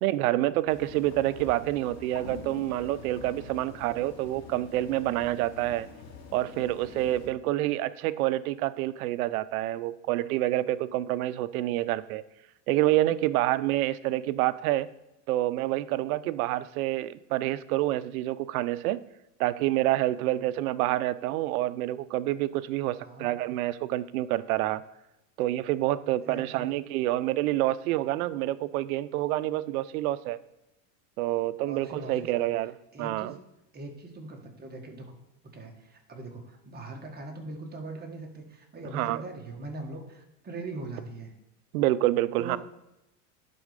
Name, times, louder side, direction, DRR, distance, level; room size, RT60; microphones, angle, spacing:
voice 1, 0.0-5.9 6.3-12.2 12.7-14.9 15.3-19.0 19.4-24.8 25.4-30.4 31.2-33.4 38.9-39.2 41.7-42.6, right 15 dB, 85° right, 16 dB, 0.6 m, -28 dB
sound 1, 0.7-7.3, left 4 dB, 70° left, 2.5 m, -45 dB
voice 2, 26.0-26.7 31.6-32.5 32.9-33.4 33.7-35.1 35.5-41.3 42.4-42.6, right 2 dB, 25° right, 3 dB, 1.6 m, -41 dB
10.5 x 4.2 x 5.1 m, 0.93 s
supercardioid pair, 120°, 42 cm